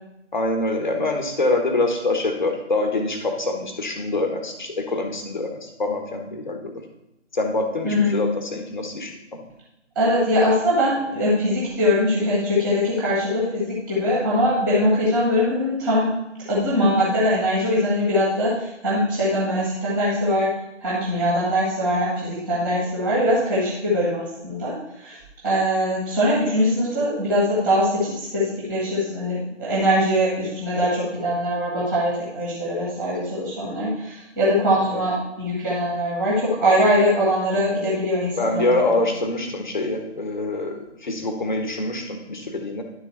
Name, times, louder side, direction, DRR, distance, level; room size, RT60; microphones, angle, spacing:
voice 1, 0.3-6.8 7.3-9.4 34.9-35.0 38.4-42.8, left 2 dB, 40° left, 4 dB, 1.3 m, -25 dB
voice 2, 7.8-8.2 9.9-16.1 16.5-20.5 20.8-25.2 25.4-38.9, equal, ahead, -7 dB, 1.1 m, -22 dB
11.0 x 3.8 x 5.6 m, 0.88 s
figure-of-eight pair, 150°, 37 cm